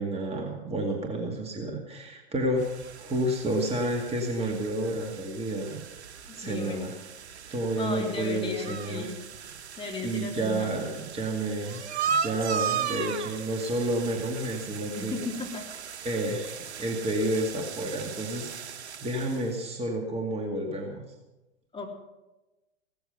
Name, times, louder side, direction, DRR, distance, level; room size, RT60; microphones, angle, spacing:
voice 1, 0.0-5.8 6.4-7.0 7.5-9.1 10.0-11.8 12.1-15.2 16.0-18.8 19.0-21.0, right 1 dB, 20° right, 1 dB, 2.3 m, -30 dB
sound 1, 2.6-19.6, right 7 dB, 70° right, 1.1 m, -37 dB
voice 2, 6.3-6.9 7.8-9.2 9.8-10.7 15.0-15.7 21.7-21.9, left 4 dB, 15° left, 0 dB, 3.2 m, -35 dB
16.5 x 14.0 x 5.6 m, 1.0 s
figure-of-eight pair, 105°, 35 cm